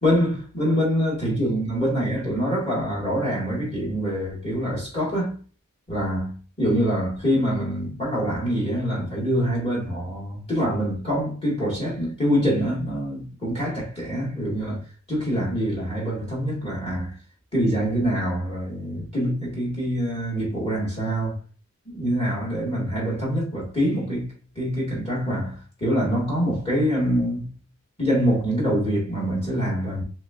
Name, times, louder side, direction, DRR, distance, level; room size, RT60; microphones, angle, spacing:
voice 1, 0.0-5.4 5.9-17.1 17.5-21.4 21.9-27.5 28.0-30.0, equal, 25° left, 1.7 m, -25 dB
4.6 x 3.3 x 2.3 m
head